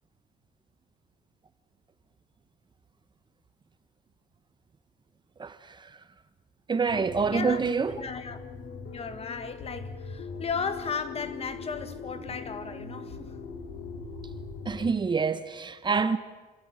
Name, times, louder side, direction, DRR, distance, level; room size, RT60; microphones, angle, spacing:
voice 1, 5.4-5.9 6.7-8.0 14.6-16.2, right 5 dB, 25° right, 1.0 m, -27 dB
sound 1, 6.9-14.9, left 4 dB, 75° left, 3.7 m, -41 dB
voice 2, 7.3-8.4 8.9-13.4, left 5 dB, 35° left, 1.8 m, -35 dB
27.0 x 15.5 x 8.9 m
cardioid pair, 110°, 17 cm